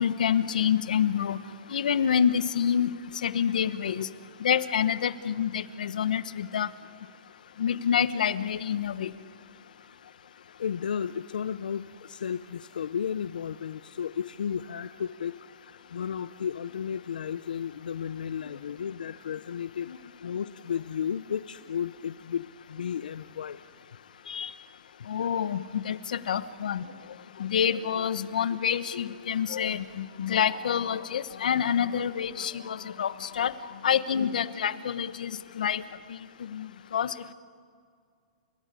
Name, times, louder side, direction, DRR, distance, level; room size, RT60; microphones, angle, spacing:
voice 1, 0.0-1.4 1.7-2.9 3.2-4.1 4.4-6.7 7.6-9.1 19.9-20.0 24.3-24.5 25.1-26.8 27.4-33.5 33.8-35.8 36.1-37.3, left 8 dB, 75° left, 14 dB, 1.1 m, -27 dB
voice 2, 10.6-19.9 20.2-23.6, left 8 dB, 90° left, 12 dB, 0.7 m, -33 dB
30.0 x 16.0 x 9.8 m, 2.2 s
hypercardioid pair, 165°, 4 cm